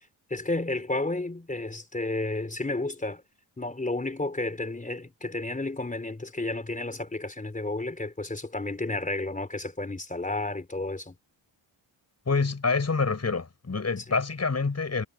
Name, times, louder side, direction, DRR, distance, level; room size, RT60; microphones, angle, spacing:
voice 1, 0.3-3.2 3.6-11.1, left 2 dB, 15° left, 4.0 m, -32 dB
voice 2, 12.3-15.0, left 4 dB, 35° left, 7.7 m, -27 dB
wide cardioid pair, 140°, 46 cm